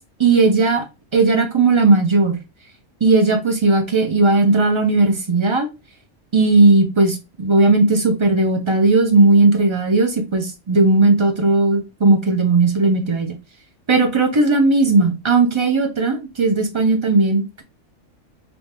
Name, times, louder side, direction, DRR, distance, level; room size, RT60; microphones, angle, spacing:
voice 1, 0.2-0.8 1.1-2.4 3.0-5.7 6.3-13.3 13.9-17.6, right 3 dB, 25° right, 0.7 m, -16 dB
3.5 x 2.8 x 3.0 m
omnidirectional pair, 1.3 m